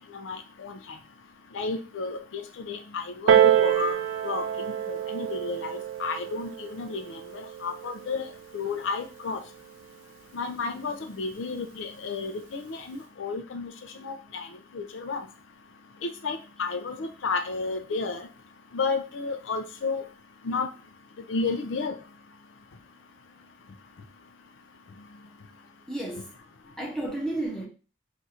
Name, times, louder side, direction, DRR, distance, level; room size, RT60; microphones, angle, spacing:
voice 1, 0.1-0.8 1.5-4.0 4.2-8.3 8.5-9.4 10.3-13.7 14.0-14.5 14.7-15.2 16.0-18.3 18.7-20.0 20.4-20.7 21.3-21.9, left 4 dB, 75° left, 0.4 m, -32 dB
Piano, 3.3-8.5 9.3-9.4, right 10 dB, 85° right, 0.4 m, -26 dB
voice 2, 25.9-26.4 26.8-27.7, right 1 dB, 5° left, 0.7 m, -32 dB
2.7 x 2.4 x 4.1 m
head